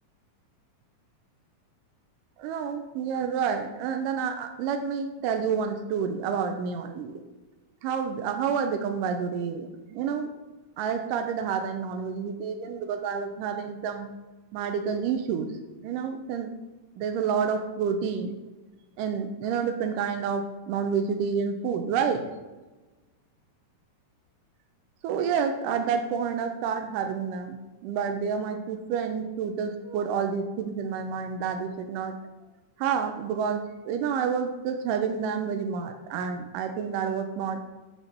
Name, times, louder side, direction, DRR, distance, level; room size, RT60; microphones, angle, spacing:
voice 1, 2.4-7.2 7.8-10.3 10.8-14.1 14.5-15.5 15.8-16.5 17.0-18.3 19.0-22.2 25.0-27.6 27.8-32.2 32.8-37.6, right 6 dB, 85° right, 6 dB, 2.2 m, -29 dB
8.2 x 4.1 x 5.9 m, 1.2 s
omnidirectional pair, 3.8 m